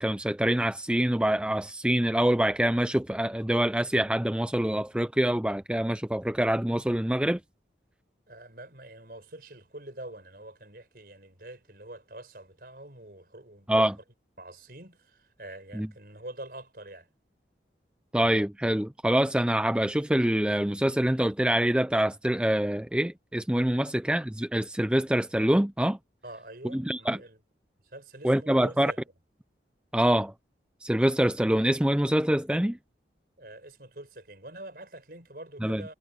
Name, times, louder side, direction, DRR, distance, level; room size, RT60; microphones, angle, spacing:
voice 1, 0.0-7.4 13.7-13.9 15.8-15.9 18.1-26.0 26.7-27.2 28.2-28.9 29.9-30.3 30.8-32.8 35.6-35.8, right 1 dB, 5° right, 0.5 m, -25 dB
voice 2, 8.3-13.9 14.4-17.1 23.8-23.9 26.2-27.4 27.8-29.0 33.4-35.9, right 1 dB, 55° right, 5.6 m, -45 dB
head